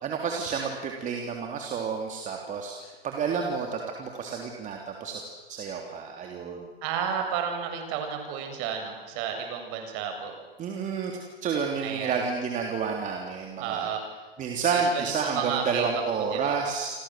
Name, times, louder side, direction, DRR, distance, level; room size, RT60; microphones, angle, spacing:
voice 1, 0.0-6.6 10.6-11.1 11.4-13.9 14.4-16.9, right 5 dB, 25° right, 1 dB, 3.6 m, -30 dB
voice 2, 6.8-10.3 11.8-12.2 13.6-14.0 14.7-15.9 16.2-16.6, right 7 dB, 40° right, 5 dB, 7.5 m, -32 dB
29.5 x 25.0 x 7.8 m, 1.3 s
hypercardioid pair, 115°, 30 cm